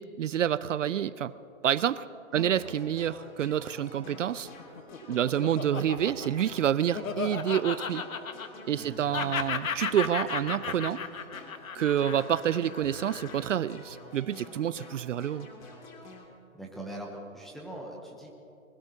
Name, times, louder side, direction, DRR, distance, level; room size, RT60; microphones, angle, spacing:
voice 1, 0.0-1.3 1.6-2.0 2.3-4.5 5.1-8.0 8.7-11.0 11.7-15.5, right 10 dB, 65° right, 17 dB, 0.5 m, -28 dB
sound 1, 2.5-16.3, left 2 dB, 35° left, 2.4 m, -48 dB
Laughter, 4.6-8.8 9.1-13.6, left 6 dB, 75° left, 1.2 m, -35 dB
voice 2, 16.5-18.3, right 1 dB, ahead, -3 dB, 0.7 m, -41 dB
24.5 x 20.5 x 2.8 m, 2.9 s
hypercardioid pair, 145°, 41 cm